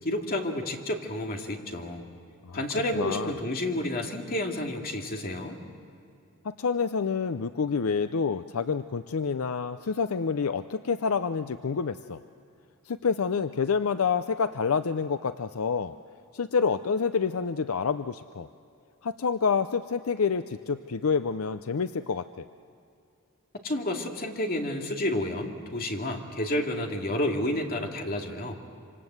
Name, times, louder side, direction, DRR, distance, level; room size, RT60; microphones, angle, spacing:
voice 1, 0.0-2.1 2.5-5.6 23.6-28.6, left 1 dB, 45° left, 2 dB, 2.4 m, -30 dB
voice 2, 2.9-3.3 6.4-12.2 12.9-15.9 16.3-18.5 19.0-22.5, left 5 dB, 75° left, 11 dB, 0.6 m, -28 dB
26.5 x 26.0 x 8.0 m, 2.5 s
head